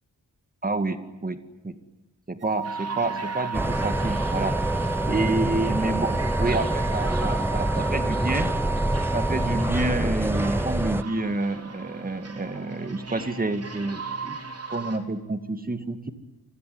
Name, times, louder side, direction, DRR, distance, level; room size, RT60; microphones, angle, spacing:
voice 1, 0.6-1.4 1.6-1.7 2.3-4.6 5.0-8.5 9.1-14.4 14.7-16.1, right 2 dB, 25° right, 9 dB, 2.1 m, -28 dB
sound 1, 2.4-9.6, right 5 dB, 90° right, 7.0 m, -33 dB
sound 2, 2.6-15.0, right 4 dB, 40° right, 3.5 m, -39 dB
sound 3, 3.5-11.0, right 1 dB, 5° right, 0.9 m, -26 dB
28.5 x 22.0 x 9.4 m, 1.1 s
wide cardioid pair, 160°, 37 cm